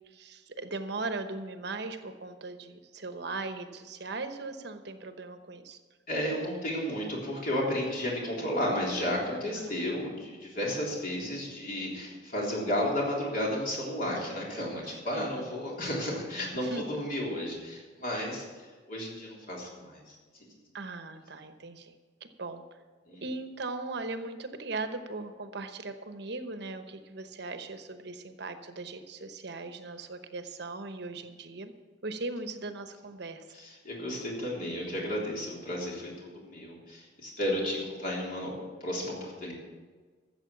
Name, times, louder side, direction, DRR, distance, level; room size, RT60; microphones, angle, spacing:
voice 1, 0.1-5.8 9.4-9.8 14.8-15.4 16.6-16.8 18.1-18.4 20.7-21.9 22.2-22.6 23.2-31.7 32.0-33.4, right 3 dB, 65° right, 8 dB, 1.0 m, -39 dB
voice 2, 6.1-18.5 18.9-20.2 23.1-23.2 33.5-38.5 38.8-39.5, left 1 dB, 50° left, -3 dB, 3.6 m, -33 dB
13.5 x 7.7 x 7.2 m, 1.4 s
head